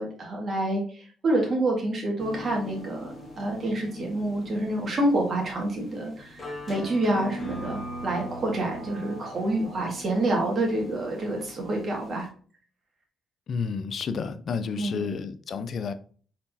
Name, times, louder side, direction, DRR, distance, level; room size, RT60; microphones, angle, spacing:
voice 1, 0.0-6.4 6.7-12.3 14.8-15.1, right 1 dB, 45° right, 2.0 m, -27 dB
sound 1, 2.2-12.3, equal, 25° left, 1.7 m, -41 dB
voice 2, 13.5-15.9, left 5 dB, 55° left, 0.5 m, -31 dB
4.2 x 4.0 x 2.8 m
cardioid pair, 90°, 0 cm